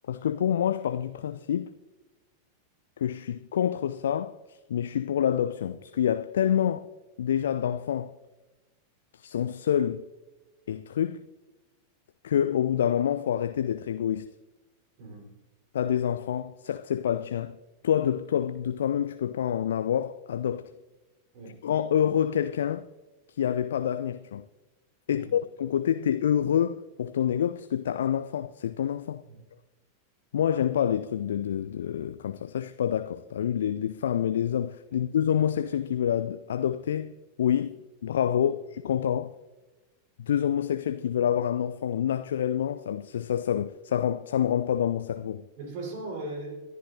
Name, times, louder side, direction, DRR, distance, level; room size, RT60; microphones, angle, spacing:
voice 1, 0.1-1.7 3.0-6.8 7.2-8.1 9.1-10.0 10.7-11.3 12.2-14.3 15.7-17.6 17.8-20.7 21.6-22.9 23.4-24.4 25.1-29.2 30.3-37.1 37.4-39.3 40.2-45.5, left 9 dB, 65° left, 0.4 m, -27 dB
voice 2, 15.0-15.3 21.3-21.6 25.1-25.4 29.3-29.4 38.4-38.5 45.6-46.6, right 2 dB, 50° right, 4.4 m, -39 dB
24.0 x 11.0 x 2.7 m
figure-of-eight pair, 90°, 0 cm